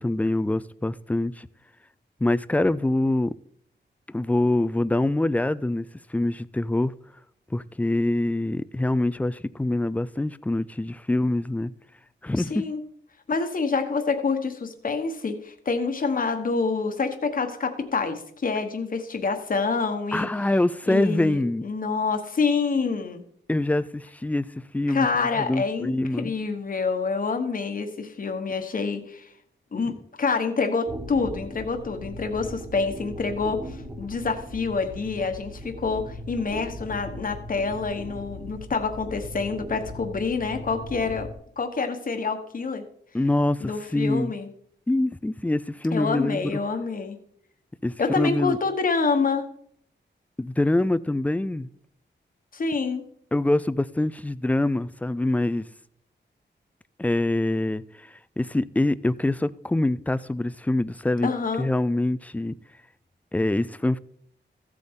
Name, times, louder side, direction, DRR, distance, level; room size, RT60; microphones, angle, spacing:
voice 1, 0.0-1.5 2.2-3.4 4.1-6.9 7.5-11.7 12.2-12.7 20.1-21.6 23.5-24.5 24.7-25.1 25.3-26.3 43.1-44.3 44.9-46.5 47.8-48.6 50.4-51.7 53.3-55.7 57.0-61.3 61.6-62.5 63.3-64.0, left 1 dB, 10° left, 0.3 m, -25 dB
voice 2, 12.4-12.8 13.3-20.3 20.9-23.2 24.9-29.3 29.7-41.3 41.6-42.9 43.6-44.5 45.9-47.2 48.0-49.5 52.5-53.0 61.2-61.7, left 4 dB, 45° left, 1.1 m, -27 dB
sound 1, 30.9-41.3, equal, 15° right, 1.2 m, -38 dB
15.0 x 7.8 x 3.7 m
wide cardioid pair, 140°, 19 cm